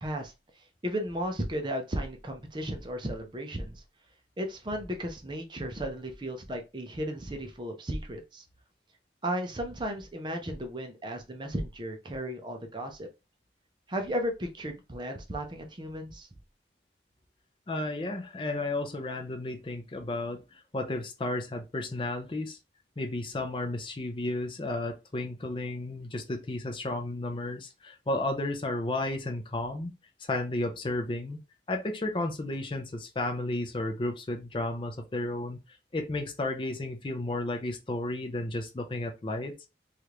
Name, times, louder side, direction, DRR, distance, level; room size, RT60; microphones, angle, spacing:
voice 1, 0.0-3.8 4.4-8.4 9.2-13.1 13.9-16.3, equal, 25° right, 0.5 m, -35 dB
voice 2, 17.7-22.6 23.0-29.9 30.2-31.4 31.7-39.6, left 2 dB, 30° left, 0.5 m, -33 dB
3.2 x 2.4 x 2.9 m
head